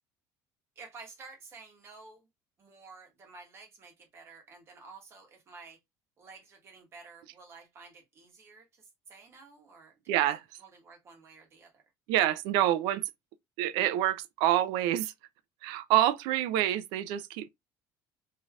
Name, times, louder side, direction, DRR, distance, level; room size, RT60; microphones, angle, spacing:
voice 1, 0.8-2.2 2.6-5.8 6.2-9.9 10.6-11.7, right 4 dB, 35° right, 1.1 m, -51 dB
voice 2, 10.1-10.4 12.1-13.0 13.6-15.1 15.6-17.5, right 13 dB, 85° right, 0.4 m, -27 dB
3.1 x 2.7 x 2.3 m
cardioid pair, 155°, 8 cm